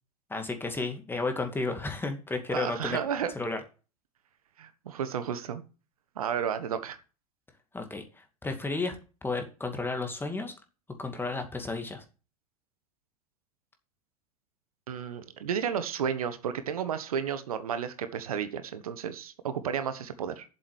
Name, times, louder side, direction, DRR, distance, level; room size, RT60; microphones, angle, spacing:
voice 1, 0.3-3.0 3.3-3.6 7.7-9.0 9.2-10.5 11.0-12.0, left 3 dB, 10° left, 6 dB, 2.4 m, -32 dB
voice 2, 2.5-3.3 4.6-5.6 6.2-7.0 14.9-20.4, right 8 dB, 75° right, 10 dB, 1.3 m, -32 dB
7.7 x 7.6 x 8.0 m, 0.35 s
hypercardioid pair, 90°, 19 cm